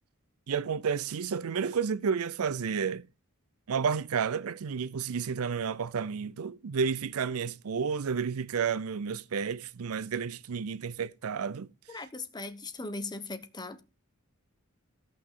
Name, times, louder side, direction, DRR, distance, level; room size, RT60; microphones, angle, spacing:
voice 1, 0.5-3.0 3.7-11.7, right 6 dB, 75° right, 0.5 m, -31 dB
voice 2, 11.9-13.8, left 3 dB, 20° left, 1.0 m, -39 dB
14.0 x 5.8 x 4.8 m
head